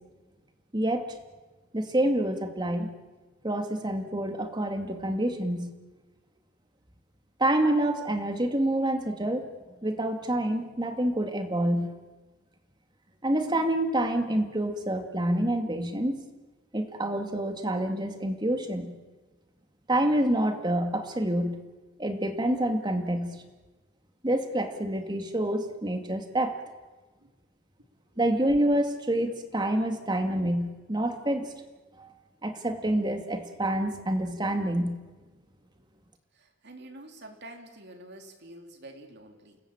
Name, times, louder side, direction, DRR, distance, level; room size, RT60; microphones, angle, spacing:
voice 1, 0.7-1.1 1.7-2.9 3.4-5.7 7.4-9.5 9.8-11.9 13.2-16.2 16.7-19.0 19.9-21.6 22.0-23.3 24.2-26.6 28.2-31.5 32.0-32.1 32.4-35.0, right 1 dB, 20° right, 6 dB, 2.2 m, -27 dB
voice 2, 36.3-39.6, right 1 dB, 55° right, 4 dB, 3.4 m, -47 dB
29.0 x 19.0 x 8.8 m, 1.3 s
head